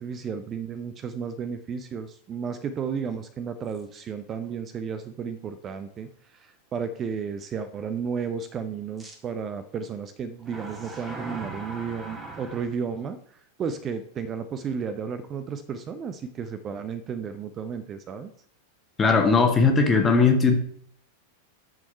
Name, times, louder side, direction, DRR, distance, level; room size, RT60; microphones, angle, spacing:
voice 1, 0.0-13.2 13.6-18.3, right 6 dB, 25° right, 12 dB, 0.6 m, -33 dB
sound 1, 3.7-3.8 4.4-4.5 9.0-9.1 10.4-12.6, right 2 dB, 10° right, 1.8 m, -39 dB
voice 2, 19.0-20.5, left 4 dB, 20° left, 4 dB, 1.4 m, -19 dB
6.3 x 6.1 x 5.5 m, 0.63 s
figure-of-eight pair, 90°, 0 cm